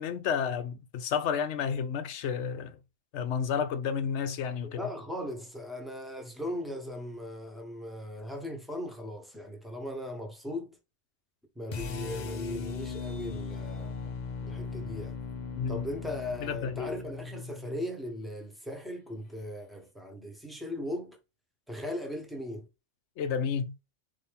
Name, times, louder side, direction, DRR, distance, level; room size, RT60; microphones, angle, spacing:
voice 1, 0.0-2.8 3.1-4.8 15.6-15.9 16.4-16.9 23.2-23.7, left 7 dB, 70° left, 0.9 m, -31 dB
voice 2, 4.6-10.8 11.5-13.9 14.4-15.2 15.7-21.2 21.7-22.7, left 1 dB, ahead, 1.0 m, -38 dB
sound 1, 11.7-17.8, left 5 dB, 45° left, 0.6 m, -38 dB
4.1 x 3.4 x 3.5 m
omnidirectional pair, 1.3 m